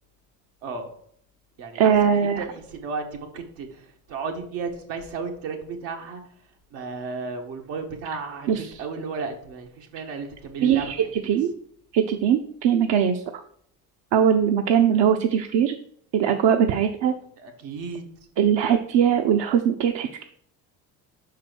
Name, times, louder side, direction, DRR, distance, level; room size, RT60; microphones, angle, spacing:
voice 1, 0.6-0.9 1.6-3.8 4.1-6.2 6.7-11.1 14.9-15.0 17.4-18.0, right 4 dB, 80° right, 2 dB, 1.6 m, -34 dB
voice 2, 1.7-2.4 8.5-8.7 10.6-11.5 11.9-13.2 14.1-15.8 16.1-17.1 18.4-20.2, right 8 dB, 60° right, 5 dB, 0.8 m, -21 dB
5.6 x 4.7 x 6.2 m, 0.64 s
hypercardioid pair, 60°, 47 cm